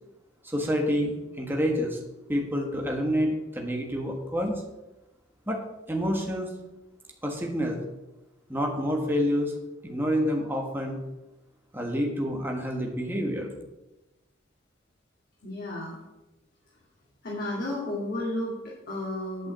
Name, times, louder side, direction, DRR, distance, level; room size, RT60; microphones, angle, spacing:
voice 1, 0.4-2.0 2.3-4.6 5.5-5.6 5.9-6.5 7.2-7.8 8.5-9.5 9.8-11.0 11.7-13.5, equal, 10° right, 0 dB, 1.5 m, -28 dB
voice 2, 15.4-16.0 17.2-19.5, left 1 dB, 55° left, -5 dB, 2.7 m, -32 dB
9.0 x 5.5 x 8.1 m, 0.99 s
head